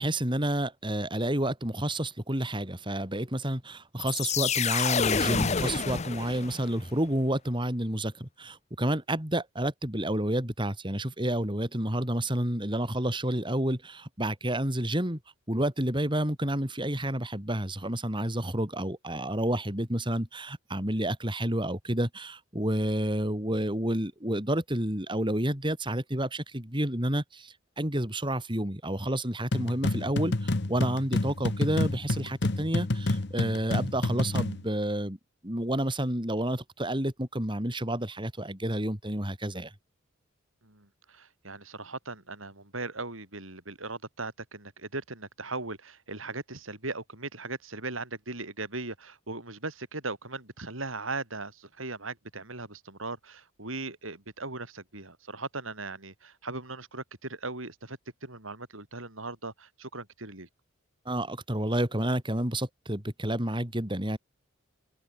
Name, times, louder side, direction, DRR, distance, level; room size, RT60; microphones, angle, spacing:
voice 1, 0.0-15.2 15.5-35.2 35.4-39.7 61.1-64.2, right 1 dB, 25° right, 4.3 m, -30 dB
sound 1, 4.0-6.8, left 6 dB, 35° left, 0.8 m, -28 dB
sound 2, 29.5-34.6, left 2 dB, 55° left, 1.2 m, -29 dB
voice 2, 40.6-60.5, right 3 dB, 85° right, 6.2 m, -38 dB
open air
head